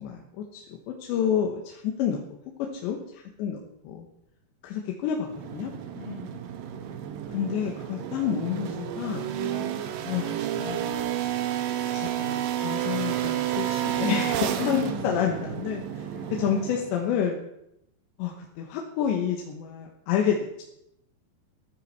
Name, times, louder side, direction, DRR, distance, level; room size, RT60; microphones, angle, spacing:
voice 1, 0.0-2.2 2.6-4.1 4.6-5.7 7.3-9.3 10.0-11.0 11.9-16.1 16.4-17.4 18.2-20.6, left 8 dB, 75° left, 0 dB, 3.3 m, -29 dB
sound 1, 5.3-17.1, right 10 dB, 80° right, 2.0 m, -31 dB
voice 2, 5.9-6.4 9.4-9.8 14.4-15.3 16.1-16.7, left 6 dB, 40° left, -3 dB, 3.9 m, -37 dB
15.0 x 14.0 x 4.8 m, 0.80 s
omnidirectional pair, 5.5 m